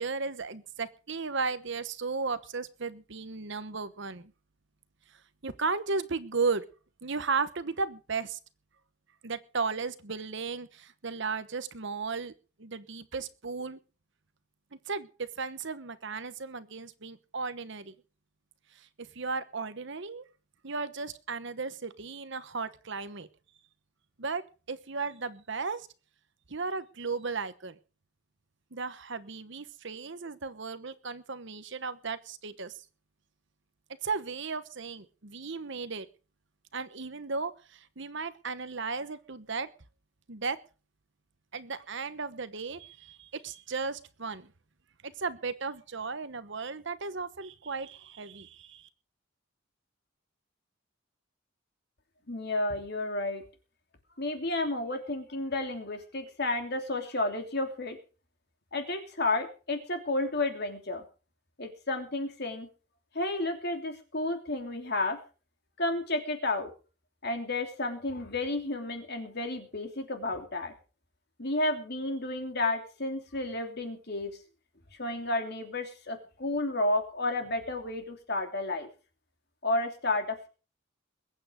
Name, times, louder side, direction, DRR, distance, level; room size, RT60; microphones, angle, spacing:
voice 1, 0.0-4.3 5.4-6.6 7.0-8.4 9.2-12.3 12.6-13.8 14.7-15.1 15.4-17.9 18.7-20.2 20.6-23.3 24.2-24.4 24.7-25.9 26.5-27.8 28.7-32.8 34.0-36.1 36.7-39.7 40.3-40.6 41.5-44.5 45.0-48.9, right 4 dB, 60° right, 13 dB, 1.1 m, -35 dB
voice 2, 52.3-53.4 54.2-58.0 58.7-61.0 61.6-62.7 63.1-65.2 65.8-66.7 67.2-70.7 71.4-74.3 75.0-78.9 79.6-80.5, left 2 dB, 50° left, 5 dB, 3.1 m, -31 dB
21.5 x 8.7 x 5.1 m, 0.37 s
head